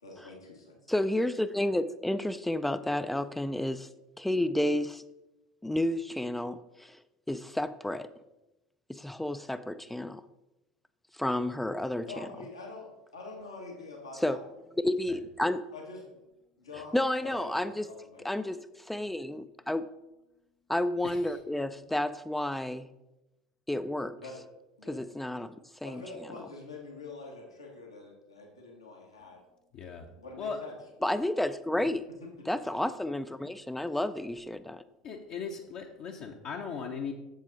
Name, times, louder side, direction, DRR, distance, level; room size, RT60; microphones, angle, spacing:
voice 1, 0.0-0.8 12.0-14.4 15.7-16.0 16.6-16.9 17.2-17.6 17.9-18.4 24.2-24.4 24.8-25.0 25.8-29.4 30.2-30.8 32.2-32.3, left 3 dB, 80° left, 0 dB, 1.4 m, -45 dB
voice 2, 0.9-3.9 4.2-5.0 5.6-7.0 7.3-8.1 8.9-10.2 11.1-12.3 14.2-14.4 14.8-15.6 16.9-17.9 18.2-19.9 20.7-22.9 23.7-24.2 24.9-26.0 31.0-32.0 32.5-34.8, left 1 dB, 5° left, 12 dB, 0.3 m, -31 dB
voice 3, 21.0-21.4 29.7-30.1 30.4-30.6 35.0-37.1, left 5 dB, 45° left, 1 dB, 0.8 m, -38 dB
7.5 x 7.3 x 3.9 m, 0.96 s
figure-of-eight pair, 70°, 3 cm